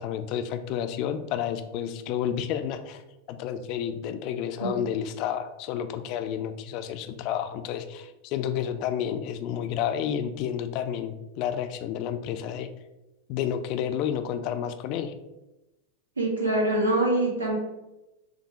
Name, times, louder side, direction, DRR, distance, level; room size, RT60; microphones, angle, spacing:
voice 1, 0.0-3.0 3.3-12.7 13.3-15.1, left 9 dB, 40° left, 9 dB, 0.3 m, -30 dB
voice 2, 16.2-17.6, right 1 dB, 80° right, -2 dB, 1.1 m, -24 dB
6.1 x 2.2 x 2.9 m, 0.99 s
figure-of-eight pair, 90°, 0 cm